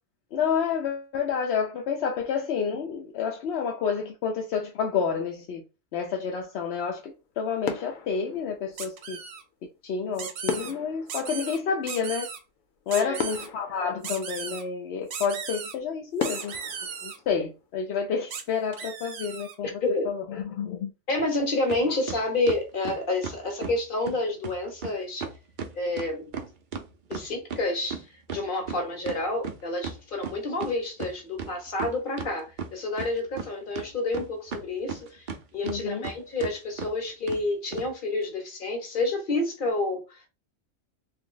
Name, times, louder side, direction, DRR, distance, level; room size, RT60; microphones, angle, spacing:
voice 1, 0.3-5.6 5.9-9.2 9.8-12.3 12.9-16.6 17.0-19.8 20.0-20.9 35.6-36.1, left 6 dB, 65° left, 0.8 m, -29 dB
sound 1, 7.0-7.3 7.6-9.1 10.5-12.4 12.8-12.9 13.2-14.8 15.3-15.4 16.2-18.1 18.4-18.6, left 7 dB, 90° left, 1.0 m, -36 dB
sound 2, 8.8-9.4 10.2-10.7 11.1-11.6 11.9-12.4 12.9-13.5 14.0-14.6 15.1-15.8 16.2-17.2 18.3-18.4 18.7-19.6, right 6 dB, 70° right, 1.0 m, -36 dB
voice 2, 19.8-20.1 21.1-25.3 25.7-26.3 27.1-35.3 35.5-40.3, left 2 dB, 45° left, 1.1 m, -29 dB
sound 3, 21.7-21.8 22.1-23.8 24.1-24.2 24.4-24.6 24.8-24.9 25.2-27.6 27.9-30.7 31.0-31.1 31.4-32.3 32.6-33.5 33.8-35.4 35.7-36.1 36.4-36.5 36.8-36.9 37.3-37.4 37.7-37.9, right 5 dB, 50° right, 0.6 m, -35 dB
2.9 x 2.6 x 3.8 m
omnidirectional pair, 1.3 m